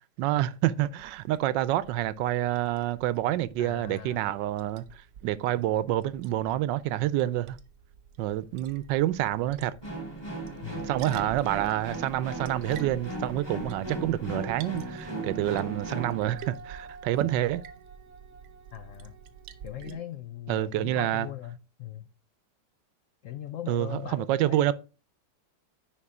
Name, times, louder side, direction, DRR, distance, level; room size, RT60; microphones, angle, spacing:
voice 1, 0.2-4.8 5.2-7.6 8.2-9.7 10.8-17.6 19.8-20.0 20.5-21.3 23.7-24.7, right 13 dB, 85° right, 1.3 m, -28 dB
Liquid, 1.0-19.9, right 8 dB, 60° right, 0.9 m, -48 dB
voice 2, 3.6-4.2 10.6-10.9 18.7-19.1 19.6-22.1 23.2-24.7, left 12 dB, 85° left, 0.7 m, -40 dB
sound 1, 9.8-16.2, right 1 dB, 15° left, 2.7 m, -37 dB
Wind instrument woodwind instrument, 14.6-20.1, right 4 dB, 40° right, 0.5 m, -49 dB
10.0 x 4.3 x 3.6 m
omnidirectional pair, 1.9 m